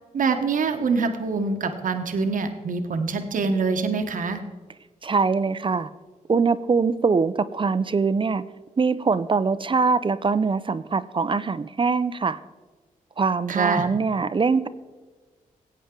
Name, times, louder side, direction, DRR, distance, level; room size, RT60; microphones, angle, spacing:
voice 1, 0.1-4.4 13.5-13.9, right 4 dB, 65° right, 6 dB, 1.1 m, -25 dB
voice 2, 5.0-5.9 6.3-8.4 8.8-12.4 13.2-14.7, right 4 dB, 35° right, 14 dB, 0.5 m, -23 dB
16.5 x 8.4 x 3.8 m, 1.3 s
cardioid pair, 60°, 14 cm